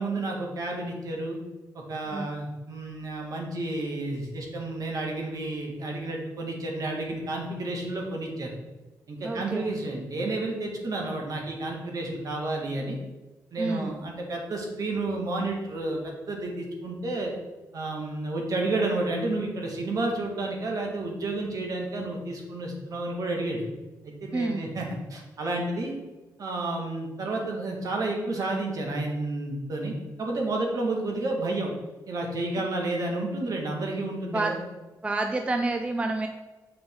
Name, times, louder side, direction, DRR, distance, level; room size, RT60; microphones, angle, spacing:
voice 1, 0.0-1.4 1.7-8.5 9.1-13.0 13.5-17.3 17.7-23.6 24.0-26.0 26.4-29.9 30.2-31.7 32.1-34.6, right 2 dB, 55° right, 0 dB, 1.6 m, -31 dB
voice 2, 9.2-9.7 13.6-13.9 24.3-24.6 34.3-34.5 35.0-36.3, right 2 dB, 15° right, 5 dB, 0.4 m, -28 dB
7.0 x 5.1 x 3.7 m, 1.1 s
cardioid pair, 125°, 7 cm